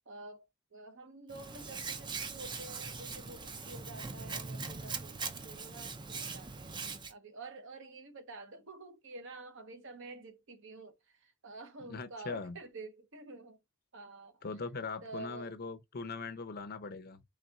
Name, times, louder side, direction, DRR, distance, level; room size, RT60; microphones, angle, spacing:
voice 1, 0.1-13.6 13.9-14.4 15.0-15.5, right 3 dB, 55° right, 0.9 m, -49 dB
Hands, 1.3-7.1, right 4 dB, 20° right, 0.5 m, -41 dB
voice 2, 11.9-12.6 14.4-17.2, left 4 dB, 45° left, 0.6 m, -40 dB
4.2 x 3.5 x 3.5 m
head